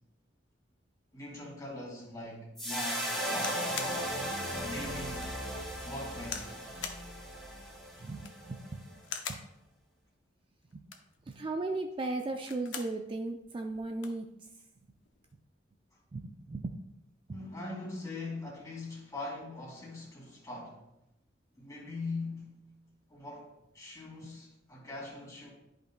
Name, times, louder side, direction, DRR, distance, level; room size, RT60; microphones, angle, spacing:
voice 1, 1.1-4.2 4.6-5.4 5.8-6.5 17.3-20.8 21.6-22.6 23.1-25.5, left 2 dB, 20° left, -3 dB, 2.3 m, -41 dB
sound 1, 2.6-9.0, equal, ahead, 1.7 m, -37 dB
sound 2, 3.4-4.0 4.6-4.7 5.2-5.3 6.2-6.5 6.8-7.1 8.1-8.5 9.0-9.5 10.7-11.2 12.3-13.0 13.4-13.5 13.7-14.2 15.1-15.3, left 7 dB, 75° left, 0.7 m, -41 dB
voice 2, 8.0-8.9 9.3-9.4 10.7-10.8 11.3-14.3 16.1-16.7 17.3-17.4, right 2 dB, 30° right, 4 dB, 0.4 m, -36 dB
11.0 x 5.3 x 2.2 m, 0.86 s
head